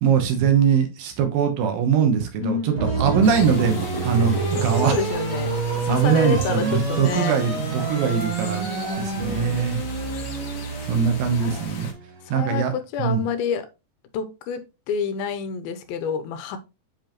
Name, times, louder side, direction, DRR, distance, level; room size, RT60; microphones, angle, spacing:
voice 1, 0.0-4.9 5.9-8.7 9.2-9.8 10.9-11.9 12.3-12.7 13.0-13.2, right 7 dB, 75° right, 2.8 m, -21 dB
voice 2, 2.4-3.4 4.7-5.5 5.8-7.5 8.6-9.6 11.4-11.6 12.3-13.7 14.1-14.6 14.9-16.6, left 6 dB, 80° left, 2.5 m, -28 dB
sound 1, 2.7-12.3, right 4 dB, 50° right, 3.7 m, -28 dB
sound 2, 3.2-11.9, left 4 dB, 60° left, 1.6 m, -39 dB
7.4 x 4.8 x 3.0 m
omnidirectional pair, 4.3 m